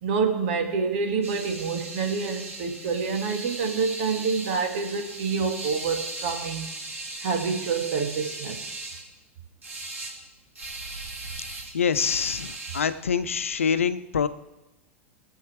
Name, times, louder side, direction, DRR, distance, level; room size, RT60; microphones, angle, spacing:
voice 1, 0.0-6.7 7.2-8.8, right 5 dB, 55° right, 3 dB, 2.1 m, -27 dB
sound 1, 1.2-9.0 9.6-10.1 10.6-12.8, right 2 dB, 90° right, 3.3 m, -38 dB
voice 2, 11.7-14.3, left 7 dB, 75° left, 13 dB, 0.7 m, -25 dB
21.5 x 7.9 x 3.4 m, 1.0 s
figure-of-eight pair, 90°, 7 cm